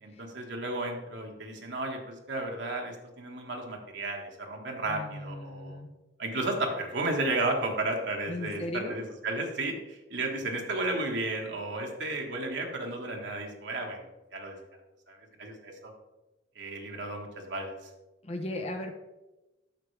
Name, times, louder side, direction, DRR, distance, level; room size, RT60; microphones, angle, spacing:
voice 1, 0.0-5.8 6.2-14.0 14.3-14.6 15.1-15.9 16.5-17.9, right 2 dB, 75° right, 1 dB, 1.5 m, -33 dB
voice 2, 4.8-5.9 8.3-9.0 18.2-18.9, left 1 dB, 35° left, 3 dB, 0.7 m, -37 dB
8.9 x 6.5 x 3.3 m, 1.0 s
head